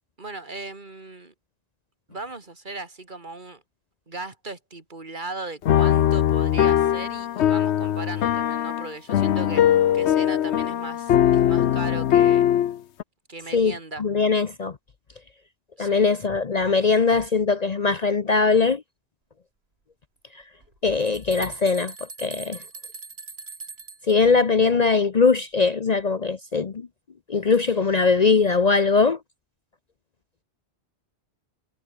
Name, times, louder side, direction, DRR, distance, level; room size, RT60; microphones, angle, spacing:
voice 1, 0.2-1.3 2.1-3.6 4.1-12.5 13.3-14.0 15.8-16.1, right 3 dB, 45° right, 2.5 m, -37 dB
sound 1, 5.7-13.0, left 10 dB, 80° left, 1.0 m, -20 dB
voice 2, 13.5-14.8 15.8-18.8 20.8-21.9 22.2-22.6 24.1-26.9 27.3-29.2, left 4 dB, 40° left, 0.8 m, -21 dB
sound 2, 20.6-24.1, right 4 dB, 65° right, 2.3 m, -40 dB
omnidirectional pair, 1.1 m